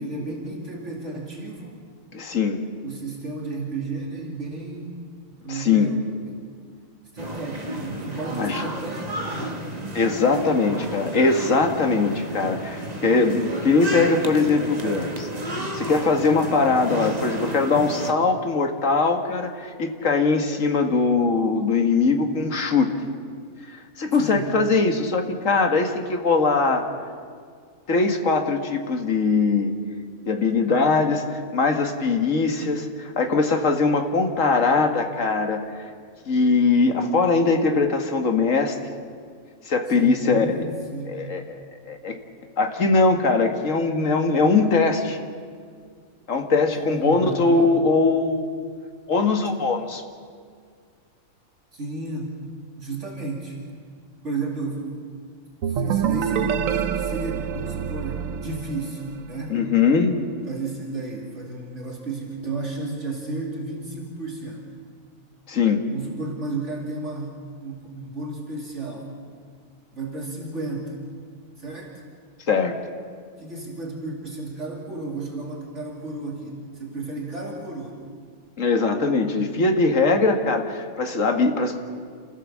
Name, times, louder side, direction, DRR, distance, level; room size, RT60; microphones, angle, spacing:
voice 1, 0.0-1.8 2.8-5.0 5.4-6.4 7.1-9.8 24.2-24.5 40.0-41.3 46.7-47.7 51.7-52.4 52.8-53.6 54.2-55.0 55.7-59.6 60.5-64.7 65.9-69.1 69.9-71.0 71.6-72.0 73.4-78.1, right 3 dB, 60° right, -2 dB, 2.9 m, -33 dB
voice 2, 2.1-2.6 5.5-5.9 8.4-8.6 9.9-15.3 15.7-22.9 23.7-26.9 27.9-29.7 30.3-35.6 36.3-38.8 39.7-40.7 41.1-42.2 42.6-45.2 46.3-48.7 49.1-50.0 59.5-60.2 65.5-65.8 72.5-72.8 78.6-81.8, left 4 dB, 70° left, 5 dB, 2.0 m, -21 dB
sound 1, 7.2-18.1, right 1 dB, 30° right, 1.5 m, -32 dB
sound 2, 55.6-59.3, right 8 dB, 80° right, 1.2 m, -26 dB
28.5 x 15.0 x 7.4 m, 2.1 s
omnidirectional pair, 1.4 m